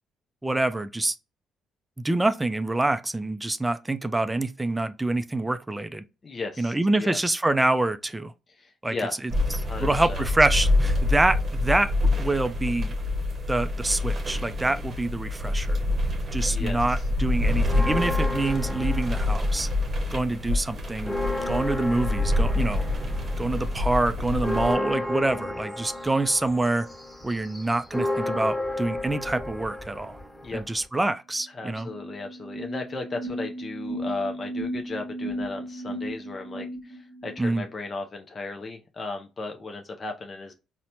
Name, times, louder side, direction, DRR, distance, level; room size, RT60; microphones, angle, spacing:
voice 1, 0.4-1.2 2.0-6.0 6.6-8.3 8.8-8.9 9.2-9.3 9.8-11.9 12.2-12.9 13.5-15.8 16.3-19.7 20.1-21.2 21.5-22.9 23.4-26.9 27.2-30.1 30.5-31.9 37.4-37.6, right 2 dB, 15° right, 0.3 m, -26 dB
voice 2, 6.2-7.2 8.6-9.2 9.6-10.2 16.5-16.8 30.4-30.6 31.5-40.5, left 3 dB, 40° left, 0.5 m, -35 dB
sound 1, 9.3-24.8, left 2 dB, 45° right, 0.8 m, -26 dB
sound 2, 17.6-20.0 20.4-30.9, left 1 dB, 10° left, 1.3 m, -33 dB
sound 3, 31.4-31.5 31.7-37.5, right 1 dB, 80° left, 0.9 m, -35 dB
4.1 x 2.1 x 2.7 m
supercardioid pair, 60°, 0 cm